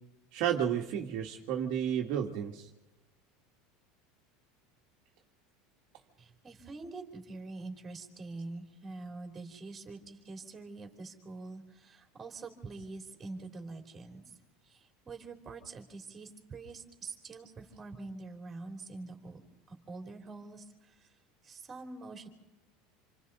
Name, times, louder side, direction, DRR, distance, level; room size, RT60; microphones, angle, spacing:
voice 1, 0.3-2.7, right 9 dB, 55° right, 1 dB, 1.6 m, -32 dB
voice 2, 6.2-14.2 14.6-19.4 19.7-21.1 21.4-22.3, right 3 dB, 15° right, 3 dB, 3.1 m, -45 dB
28.0 x 27.0 x 4.1 m, 0.97 s
supercardioid pair, 155°, 0 cm